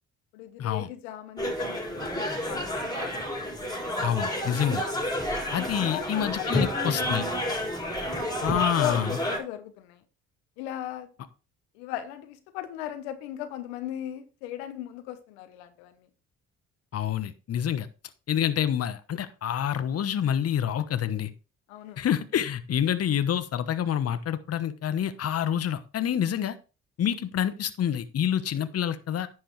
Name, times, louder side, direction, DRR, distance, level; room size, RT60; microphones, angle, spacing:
voice 1, 0.3-3.3 5.6-7.4 8.4-10.0 10.6-11.1 11.7-16.1 21.7-22.1, left 12 dB, 85° left, 1.0 m, -37 dB
sound 1, 1.4-9.4, left 1 dB, 15° left, 4.8 m, -30 dB
voice 2, 4.0-4.8 5.5-7.2 8.4-9.1 16.9-17.9 18.3-21.3 22.0-26.6 27.0-29.3, left 9 dB, 50° left, 1.1 m, -27 dB
10.0 x 7.8 x 3.2 m
hypercardioid pair, 60°, 32 cm